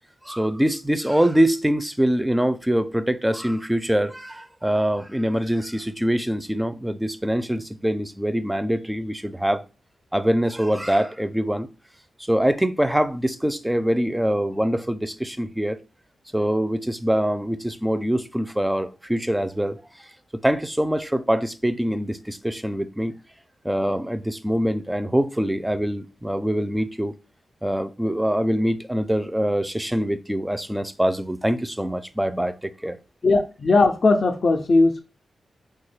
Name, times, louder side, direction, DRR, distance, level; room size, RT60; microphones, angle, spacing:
voice 1, 0.3-9.6 10.1-11.7 12.2-15.8 16.3-19.8 20.3-23.1 23.6-27.1 27.6-33.0, equal, 10° right, 0.4 m, -24 dB
voice 2, 33.2-35.0, left 3 dB, 55° left, 0.4 m, -18 dB
3.2 x 2.3 x 3.2 m
cardioid pair, 55°, 0 cm